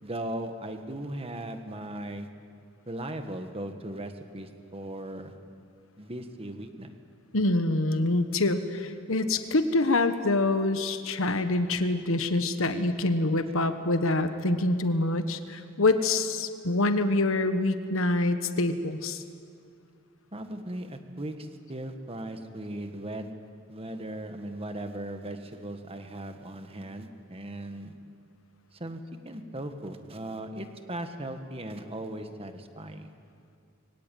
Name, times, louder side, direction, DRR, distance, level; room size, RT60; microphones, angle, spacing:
voice 1, 0.0-2.3 2.9-5.3 6.0-6.9 20.3-23.3 23.7-28.0 28.7-33.1, right 1 dB, 30° right, 7 dB, 1.6 m, -38 dB
voice 2, 7.3-19.2, left 2 dB, 70° left, 9 dB, 1.3 m, -26 dB
23.0 x 17.5 x 9.3 m, 2.3 s
head